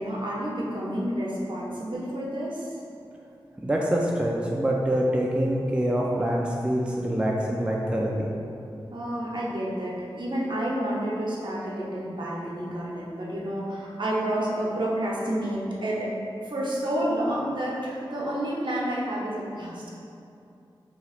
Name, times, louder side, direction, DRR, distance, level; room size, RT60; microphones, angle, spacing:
voice 1, 0.0-2.7 8.9-16.1 16.4-19.9, right 1 dB, 60° right, -5 dB, 0.8 m, -29 dB
voice 2, 3.6-8.1, equal, 10° right, -2 dB, 0.4 m, -25 dB
5.7 x 3.0 x 2.4 m, 2.6 s
wide cardioid pair, 80°, 9 cm